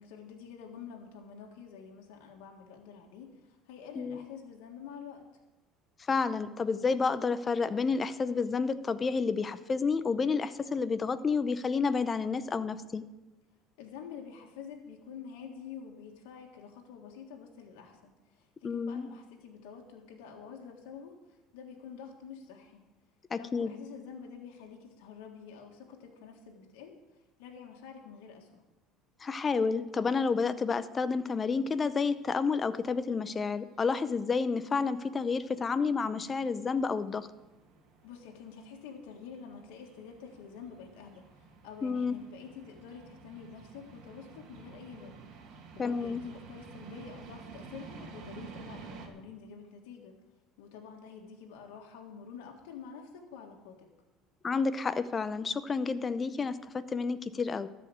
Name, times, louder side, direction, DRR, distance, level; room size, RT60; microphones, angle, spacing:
voice 1, 0.0-5.3 13.8-22.8 23.3-27.0 27.4-28.6 38.0-45.2 45.5-50.1 50.6-53.9, left 6 dB, 90° left, 1 dB, 1.6 m, -48 dB
voice 2, 6.1-13.0 18.6-19.1 23.3-23.7 29.2-37.3 41.8-42.2 45.8-46.2 54.4-57.7, left 4 dB, 25° left, 13 dB, 0.6 m, -30 dB
sound 1, 31.7-49.1, right 5 dB, 60° right, 2.0 m, -52 dB
13.0 x 5.0 x 9.0 m, 1.1 s
cardioid pair, 120°, 0 cm